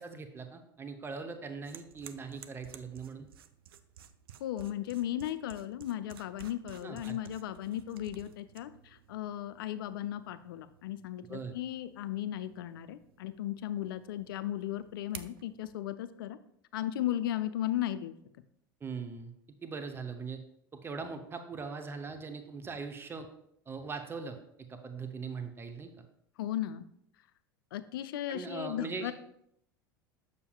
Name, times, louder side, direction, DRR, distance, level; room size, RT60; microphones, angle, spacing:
voice 1, 0.0-3.3 6.8-7.2 11.3-11.5 18.8-19.3 19.6-20.4 20.7-23.3 23.7-24.4 24.7-25.9 28.3-29.1, right 4 dB, 20° right, 7 dB, 0.7 m, -40 dB
sound 1, 1.6-15.8, right 9 dB, 75° right, 0.4 m, -54 dB
voice 2, 4.4-16.4 16.7-18.1 26.4-26.9 27.7-29.1, left 12 dB, 70° left, 13 dB, 0.4 m, -36 dB
6.9 x 6.6 x 2.3 m, 0.72 s
figure-of-eight pair, 80°, 12 cm